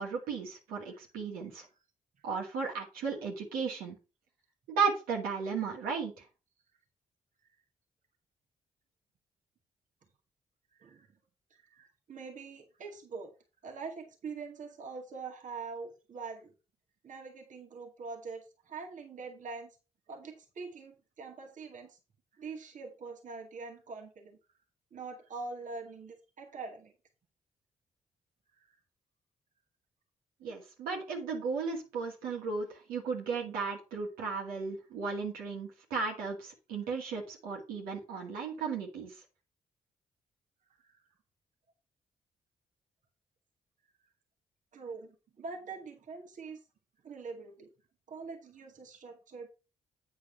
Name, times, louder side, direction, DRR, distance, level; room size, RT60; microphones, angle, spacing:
voice 1, 0.0-1.7 2.2-4.0 4.7-6.1 30.4-39.1, right 5 dB, 80° right, -1 dB, 2.2 m, -35 dB
voice 2, 11.6-13.3 13.6-16.5 17.0-19.7 20.1-22.0 22.3-24.4 24.9-26.9 28.6-28.7 40.8-40.9 44.7-46.6 47.0-47.7 48.1-49.5, right 4 dB, 60° right, 2 dB, 2.0 m, -44 dB
8.7 x 4.6 x 5.5 m, 0.31 s
hypercardioid pair, 45°, 15 cm